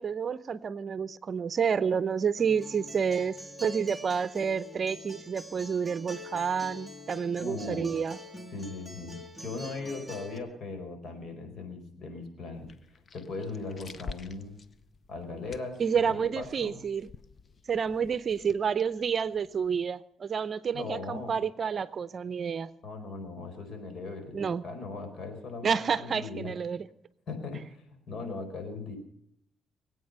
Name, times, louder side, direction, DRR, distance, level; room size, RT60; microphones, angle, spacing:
voice 1, 0.0-8.2 15.8-17.1 17.7-22.7 24.3-24.6 25.6-26.8, right 6 dB, 45° right, 16 dB, 0.7 m, -29 dB
Acoustic guitar, 2.4-10.4, left 1 dB, 10° left, 1.9 m, -45 dB
voice 2, 7.4-7.9 8.5-14.6 15.1-15.8 16.0-16.8 20.7-21.4 22.8-26.5 27.3-29.0, left 3 dB, 60° left, 6 dB, 4.6 m, -39 dB
sound 1, 12.5-19.9, left 4 dB, 45° left, 0.8 m, -49 dB
22.0 x 8.9 x 6.7 m, 0.70 s
cardioid pair, 90°, 0 cm